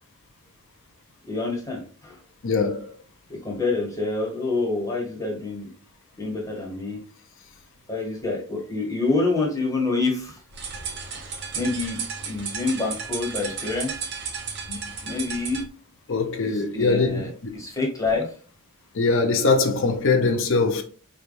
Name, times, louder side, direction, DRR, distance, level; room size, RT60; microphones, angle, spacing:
voice 1, 1.3-2.2 3.3-5.7 6.2-7.0 7.9-10.4 11.1-11.3 11.5-12.0 12.3-13.9 15.0-15.6 16.4-18.3, left 3 dB, 15° left, 1.4 m, -27 dB
voice 2, 2.4-2.9 14.7-14.8 16.1-17.6 18.9-20.8, left 3 dB, 60° left, 0.6 m, -22 dB
sound 1, 10.5-15.7, right 5 dB, 50° right, 0.9 m, -33 dB
4.7 x 3.3 x 2.6 m
head